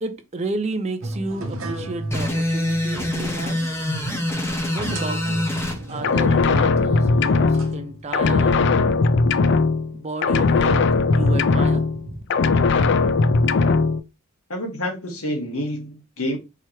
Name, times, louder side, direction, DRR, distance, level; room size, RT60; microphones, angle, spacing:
voice 1, 0.0-3.7 4.7-8.6 9.9-10.9 11.1-12.2, right 2 dB, 30° right, 0.5 m, -32 dB
sound 1, 1.0-8.6, right 1 dB, 70° right, 0.9 m, -35 dB
sound 2, 2.1-5.8, left 1 dB, 10° left, 0.8 m, -25 dB
sound 3, 6.0-10.0 10.2-12.0 12.3-14.0, left 4 dB, 50° left, 0.3 m, -18 dB
voice 2, 14.5-16.4, left 1 dB, 75° left, 1.4 m, -28 dB
4.8 x 3.0 x 2.9 m
head